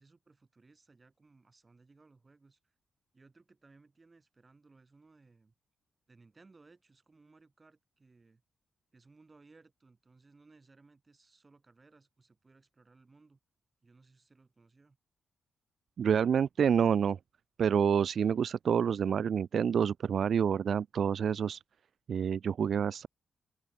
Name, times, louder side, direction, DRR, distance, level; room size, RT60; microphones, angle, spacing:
voice 1, 0.0-2.7 3.1-5.5 6.1-8.4 8.9-13.4 13.8-15.0, right 3 dB, 25° right, 7.4 m, -62 dB
voice 2, 16.0-17.2 17.6-21.6 22.1-23.1, right 7 dB, 60° right, 0.4 m, -28 dB
cardioid pair, 110°, 0 cm